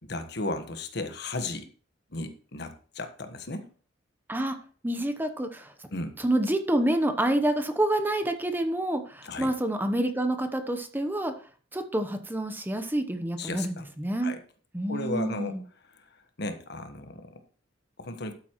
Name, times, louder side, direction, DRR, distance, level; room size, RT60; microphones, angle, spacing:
voice 1, 0.0-1.7 2.1-3.7 5.9-6.2 9.2-9.5 13.4-13.9 14.2-14.4 14.9-17.4 18.0-18.3, left 2 dB, 60° left, 7 dB, 1.3 m, -35 dB
voice 2, 4.8-5.7 6.2-11.3 11.7-14.3 14.7-15.6, right 1 dB, 10° right, 8 dB, 0.9 m, -28 dB
12.5 x 8.3 x 3.1 m, 0.41 s
head